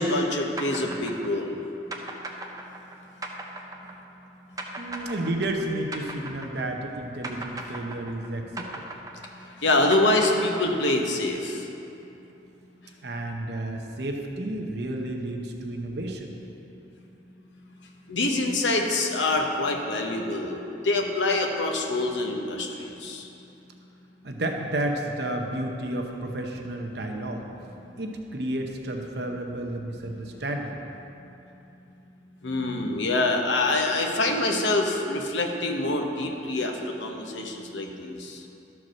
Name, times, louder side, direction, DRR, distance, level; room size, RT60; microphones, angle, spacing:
voice 1, 0.0-1.6 9.6-11.6 18.1-23.2 32.4-36.7 37.0-38.4, left 2 dB, 85° left, 2 dB, 1.0 m, -25 dB
sound 1, 0.6-6.9 7.2-11.1, right 2 dB, 20° right, 0.6 m, -37 dB
voice 2, 4.8-8.8 13.0-16.3 24.2-27.4 28.0-30.7, right 1 dB, 65° right, 2 dB, 0.8 m, -31 dB
12.0 x 4.6 x 6.3 m, 2.9 s
head